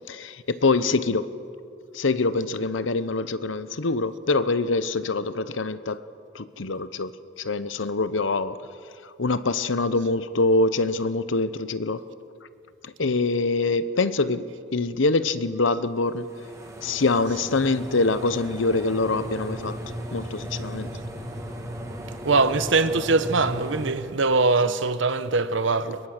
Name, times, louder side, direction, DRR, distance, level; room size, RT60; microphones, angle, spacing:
voice 1, 0.1-1.3 1.9-6.0 6.3-7.1 7.4-8.6 9.2-12.0 12.8-16.3 16.8-19.8 20.1-20.9 24.6-24.7, left 3 dB, 75° left, 0.9 m, -24 dB
sound 1, 16.1-23.9, equal, 15° right, 2.2 m, -36 dB
voice 2, 22.2-26.0, right 3 dB, 70° right, 1.0 m, -22 dB
23.5 x 21.5 x 6.6 m
head